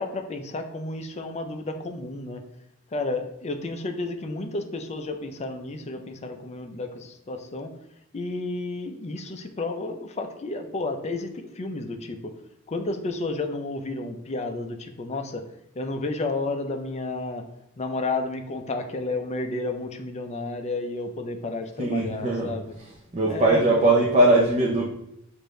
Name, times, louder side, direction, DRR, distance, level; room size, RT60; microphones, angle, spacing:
voice 1, 0.0-2.4 2.9-7.7 8.1-12.3 12.7-15.4 15.8-17.4 17.8-22.7 23.3-24.1, left 2 dB, 30° left, 5 dB, 0.5 m, -31 dB
voice 2, 21.8-22.5 23.1-24.9, right 2 dB, 30° right, -5 dB, 0.6 m, -20 dB
6.4 x 2.6 x 3.1 m, 0.81 s
head